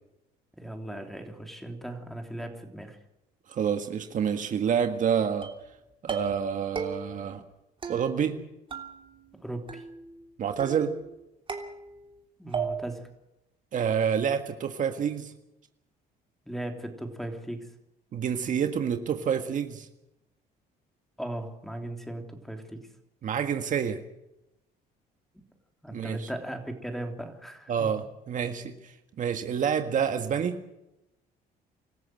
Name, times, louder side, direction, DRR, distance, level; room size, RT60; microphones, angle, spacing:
voice 1, 0.6-3.0 9.4-9.8 12.4-13.1 16.5-17.7 21.2-22.9 25.3-25.4 25.8-27.9, right 1 dB, ahead, 4 dB, 3.3 m, -37 dB
voice 2, 3.5-5.5 6.0-7.4 7.9-8.4 10.4-10.9 13.7-15.3 18.1-19.9 23.2-24.0 25.9-26.3 27.7-30.5, right 7 dB, 50° right, 6 dB, 1.7 m, -28 dB
sound 1, 5.4-5.7 6.1-6.5 6.8-7.3 7.8-8.4 8.7-9.4 9.7-10.2 10.6-11.1 11.5-12.2 12.5-13.1, right 5 dB, 30° right, 3.0 m, -36 dB
25.5 x 14.0 x 7.8 m, 0.90 s
cardioid pair, 110°, 17 cm